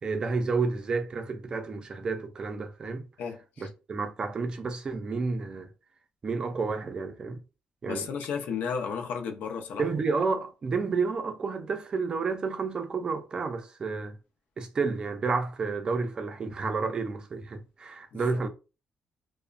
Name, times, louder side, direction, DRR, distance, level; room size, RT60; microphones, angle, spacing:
voice 1, 0.0-3.1 3.6-5.7 6.2-7.4 7.8-8.1 9.8-14.2 14.6-18.5, right 4 dB, 30° right, 0.4 m, -30 dB
voice 2, 3.2-3.7 7.9-9.9 18.1-18.4, left 6 dB, 85° left, 0.5 m, -34 dB
2.9 x 2.0 x 2.4 m
cardioid pair, 170°, 3 cm